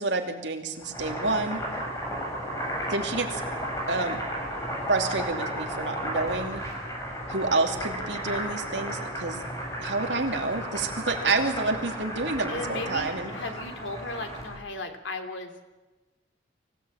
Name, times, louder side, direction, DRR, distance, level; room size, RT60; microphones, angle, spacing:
voice 1, 0.0-1.6 2.9-3.4 3.9-4.2 4.9-6.6 7.3-9.4 9.8-13.3, right 3 dB, 75° right, 4 dB, 2.8 m, -28 dB
Boiling, 0.7-14.6, equal, 15° left, 6.9 m, -34 dB
voice 2, 12.5-15.6, left 2 dB, 85° left, 6 dB, 3.0 m, -36 dB
24.5 x 16.5 x 8.8 m, 1.2 s
head